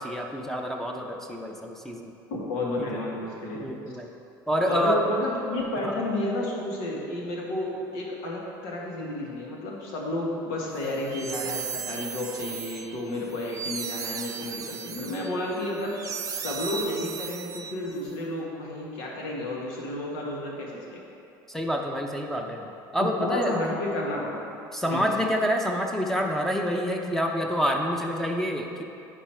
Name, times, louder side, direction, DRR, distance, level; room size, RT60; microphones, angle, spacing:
voice 1, 0.0-2.1 2.8-3.0 3.5-4.1 4.5-5.0 5.8-5.9 21.5-23.6 24.7-28.8, equal, 5° left, 1 dB, 0.9 m, -28 dB
voice 2, 2.3-3.7 4.6-21.0 23.2-24.6 24.9-25.0, left 1 dB, 75° left, -3 dB, 1.7 m, -31 dB
sound 1, 10.8-18.1, right 6 dB, 35° right, 0.6 m, -36 dB
10.0 x 4.2 x 4.5 m, 2.7 s
hypercardioid pair, 75°, 11 cm